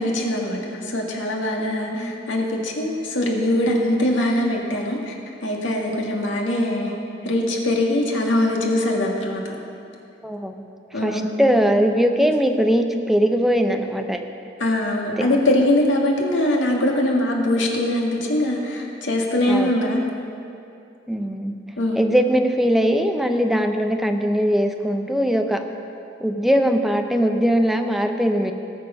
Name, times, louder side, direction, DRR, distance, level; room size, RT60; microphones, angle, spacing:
voice 1, 0.0-5.2 5.4-6.9 7.2-9.6 10.9-11.4 12.0-12.1 14.6-20.0 21.8-22.0, left 1 dB, 85° left, 0 dB, 1.9 m, -22 dB
voice 2, 10.2-10.7 10.9-14.2 19.5-19.7 21.1-25.6 26.2-28.5, equal, ahead, 5 dB, 0.6 m, -21 dB
18.5 x 6.6 x 5.6 m, 2.6 s
head